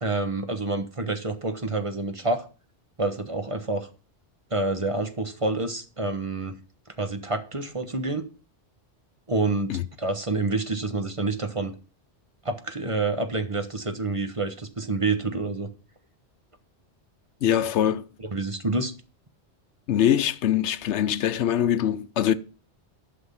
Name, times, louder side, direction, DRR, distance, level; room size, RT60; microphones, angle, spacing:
voice 1, 0.0-2.4 3.0-3.9 4.5-6.6 7.0-8.2 9.3-11.7 12.4-15.7 18.3-18.9, right 3 dB, 30° right, 1.2 m, -28 dB
voice 2, 17.4-18.1 19.9-22.3, left 10 dB, 80° left, 1.0 m, -23 dB
12.0 x 5.9 x 5.7 m
omnidirectional pair, 1.2 m